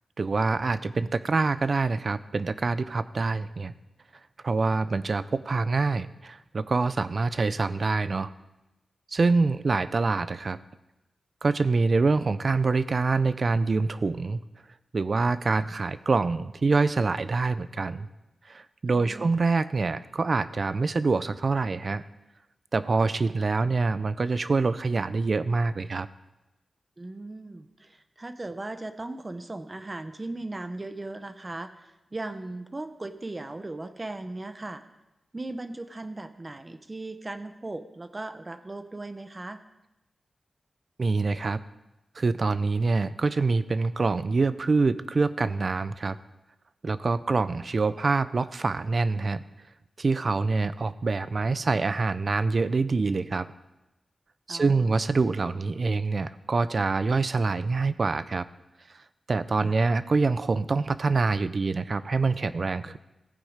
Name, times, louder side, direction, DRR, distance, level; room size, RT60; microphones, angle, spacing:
voice 1, 0.2-3.7 4.4-8.3 9.1-10.6 11.4-14.4 14.9-18.1 18.5-22.0 22.7-26.1 41.0-41.6 42.2-46.2 46.8-49.4 50.0-53.5 54.5-58.5 59.3-63.0, right 3 dB, 55° right, 14 dB, 0.5 m, -25 dB
voice 2, 18.9-19.4 27.0-34.8 35.3-39.6 54.5-54.9 59.6-59.8, right 2 dB, 30° right, 10 dB, 0.9 m, -38 dB
15.0 x 8.3 x 5.1 m, 0.97 s
wide cardioid pair, 85°, 0 cm